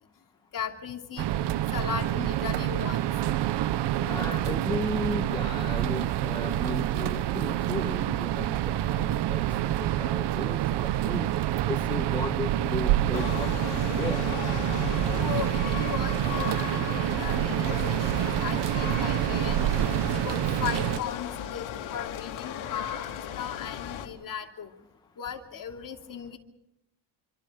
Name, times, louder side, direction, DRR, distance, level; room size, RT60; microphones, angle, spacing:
voice 1, 0.5-1.3 1.7-3.1 15.2-24.7 25.2-26.4, left 8 dB, 40° left, 3 dB, 2.9 m, -37 dB
sound 1, 1.2-21.0, right 13 dB, 55° right, 1.0 m, -27 dB
voice 2, 4.0-11.3 11.7-14.2, left 2 dB, 10° left, 3 dB, 2.0 m, -36 dB
sound 2, 13.1-24.1, left 10 dB, 70° left, 3.2 m, -36 dB
28.0 x 24.5 x 5.1 m, 0.81 s
cardioid pair, 125°, 50 cm